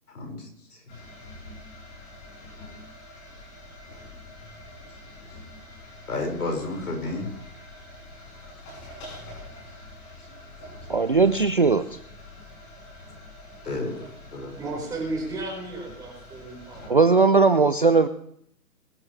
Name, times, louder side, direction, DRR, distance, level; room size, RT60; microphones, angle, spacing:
voice 1, 0.1-0.8 6.1-7.3 13.6-14.0 14.3-14.6, left 2 dB, 70° left, 2 dB, 5.3 m, -31 dB
sound 1, 0.9-16.9, left 1 dB, 30° left, 6.9 m, -45 dB
voice 2, 10.9-12.0 16.9-18.1, right 4 dB, 35° right, 11 dB, 0.4 m, -19 dB
voice 3, 14.6-17.0, right 2 dB, 5° right, -3 dB, 4.6 m, -34 dB
22.0 x 11.5 x 3.2 m, 0.69 s
hypercardioid pair, 150°, 47 cm